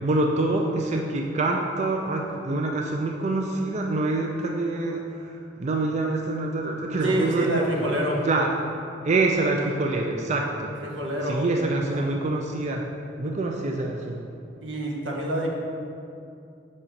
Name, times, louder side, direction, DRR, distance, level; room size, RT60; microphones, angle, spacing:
voice 1, 0.0-7.7 8.2-8.5 9.0-10.7 11.3-12.8 13.2-14.2, right 2 dB, 40° right, 1 dB, 0.4 m, -26 dB
voice 2, 7.0-8.3 10.8-11.4 11.9-12.1 14.6-15.5, right 1 dB, 85° right, -1 dB, 1.0 m, -27 dB
5.9 x 4.3 x 5.0 m, 2.5 s
head